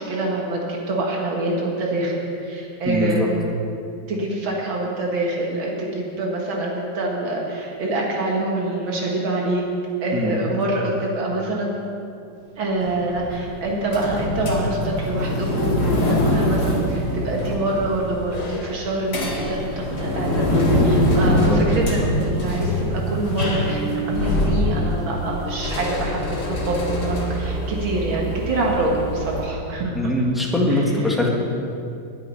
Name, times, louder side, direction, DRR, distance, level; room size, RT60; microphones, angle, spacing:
voice 1, 0.0-3.3 4.1-9.6 10.0-11.7 12.6-30.1 30.7-31.2, right 2 dB, 75° right, -2 dB, 2.4 m, -26 dB
voice 2, 2.8-3.3 10.1-10.5 21.2-21.6 29.9-31.3, left 1 dB, ahead, -2 dB, 1.6 m, -22 dB
sound 1, 12.8-29.5, left 1 dB, 55° left, 2.5 m, -24 dB
9.4 x 8.7 x 9.9 m, 2.6 s
omnidirectional pair, 2.2 m